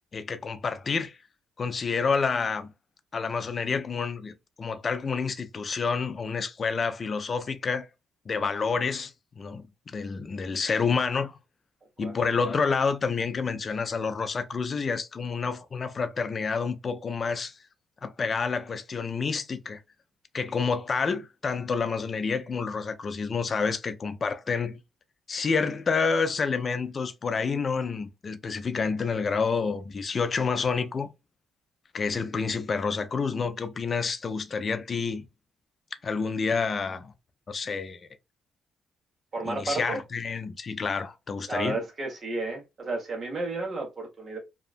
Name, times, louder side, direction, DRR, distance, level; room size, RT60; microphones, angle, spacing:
voice 1, 0.1-1.2 1.6-2.7 3.1-7.9 8.3-9.7 9.9-11.3 12.0-17.6 18.0-19.8 20.3-24.8 25.3-31.1 31.9-35.2 36.0-37.1 37.5-38.0 39.4-41.8, left 5 dB, 40° left, 0.5 m, -28 dB
voice 2, 39.3-40.0 41.5-44.4, right 3 dB, 40° right, 1.3 m, -32 dB
2.8 x 2.3 x 2.5 m
cardioid pair, 90°, 0 cm